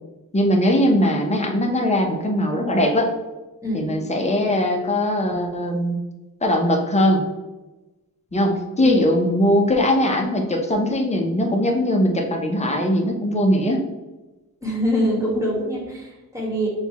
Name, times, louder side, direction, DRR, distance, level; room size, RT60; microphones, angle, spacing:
voice 1, 0.3-3.1 3.7-6.0 6.4-7.2 8.3-13.8, left 1 dB, 20° left, 2 dB, 0.6 m, -20 dB
voice 2, 14.6-16.7, equal, 10° right, -4 dB, 1.3 m, -24 dB
6.3 x 2.3 x 2.9 m, 1.1 s
wide cardioid pair, 115°, 36 cm